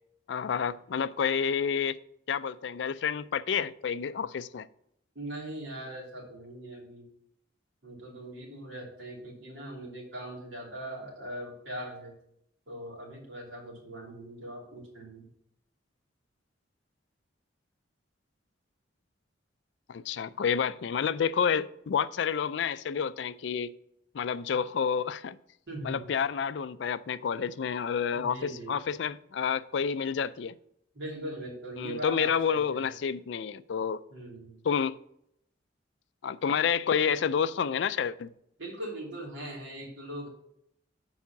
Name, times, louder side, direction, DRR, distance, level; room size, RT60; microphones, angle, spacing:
voice 1, 0.3-2.0 2.3-4.7 19.9-23.7 24.1-25.4 25.8-30.5 31.8-34.0 34.6-35.0 36.2-38.3, left 7 dB, 65° left, 0.4 m, -29 dB
voice 2, 5.1-7.1 7.8-12.1 12.7-15.3 25.7-26.1 28.1-28.8 30.9-32.9 34.1-34.6 38.6-40.3, right 1 dB, 80° right, 2.9 m, -40 dB
7.0 x 4.8 x 5.8 m
head